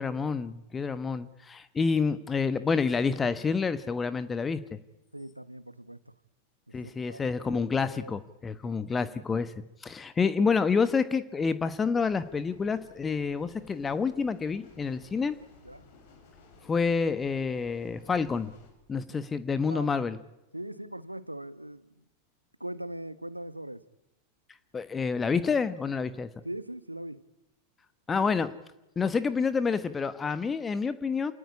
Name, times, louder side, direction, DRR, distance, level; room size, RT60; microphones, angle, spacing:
voice 1, 0.0-4.8 6.7-9.5 9.8-15.4 16.6-18.5 18.9-20.2 24.7-26.3 28.1-28.5 29.0-31.3, left 5 dB, 15° left, 1.2 m, -28 dB
voice 2, 5.1-6.1 6.7-8.1 15.6-15.8 19.7-20.1 20.5-22.0 22.6-23.8 26.4-27.2, right 1 dB, 85° right, 1.2 m, -41 dB
sound 1, 12.0-18.7, left 4 dB, 50° left, 6.8 m, -56 dB
27.5 x 19.0 x 9.9 m
figure-of-eight pair, 90°, 0 cm